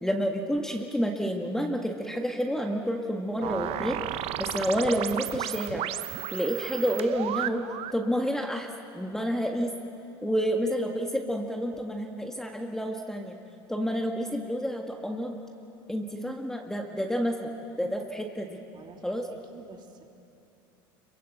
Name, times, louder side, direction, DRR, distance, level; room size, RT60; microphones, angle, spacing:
voice 1, 0.0-4.0 4.4-5.9 6.3-7.6 7.9-8.7 8.9-9.7 10.2-13.4 13.7-15.3 15.9-17.5 17.8-18.6 19.0-19.3, equal, 5° left, 2 dB, 1.7 m, -29 dB
sound 1, 3.4-8.0, right 13 dB, 55° right, 1.0 m, -33 dB
voice 2, 18.7-20.0, right 5 dB, 35° right, 3 dB, 2.9 m, -50 dB
26.0 x 23.0 x 8.1 m, 2.9 s
supercardioid pair, 105°, 12 cm